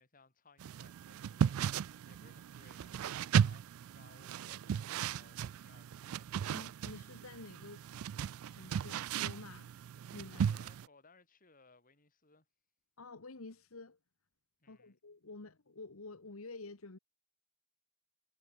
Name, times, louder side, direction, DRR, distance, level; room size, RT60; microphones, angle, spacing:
voice 1, 0.0-6.3 10.3-12.5 14.6-14.9, left 4 dB, 40° left, 5.5 m, -65 dB
sound 1, 0.6-10.9, right 8 dB, 90° right, 0.3 m, -36 dB
voice 2, 6.5-7.8 8.5-9.7 10.1-10.5 13.0-14.0 14.7-17.0, left 3 dB, 85° left, 1.4 m, -50 dB
head